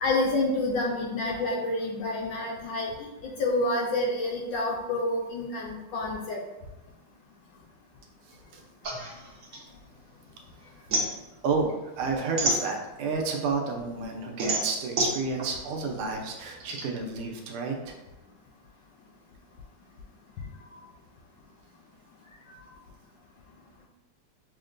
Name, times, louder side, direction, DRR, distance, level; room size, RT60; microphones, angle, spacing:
voice 1, 0.0-6.4, left 2 dB, 75° left, -2 dB, 1.1 m, -28 dB
sound 1, 8.8-10.3 10.6-13.2 13.6-16.8, right 2 dB, 70° right, 0.7 m, -30 dB
voice 2, 11.4-18.0, right 4 dB, 85° right, 2 dB, 1.6 m, -30 dB
6.1 x 2.2 x 2.5 m, 0.99 s
omnidirectional pair, 2.3 m